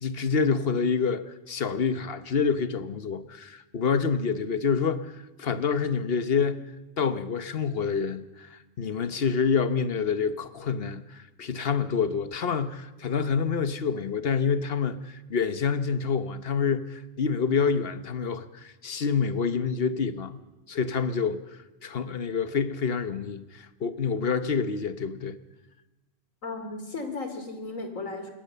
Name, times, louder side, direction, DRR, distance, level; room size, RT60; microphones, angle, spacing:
voice 1, 0.0-6.7 7.0-20.4 20.7-25.4, left 6 dB, 50° left, 1.2 m, -27 dB
voice 2, 26.4-28.3, left 3 dB, 85° left, 3.3 m, -35 dB
26.0 x 21.0 x 6.8 m
omnidirectional pair, 1.3 m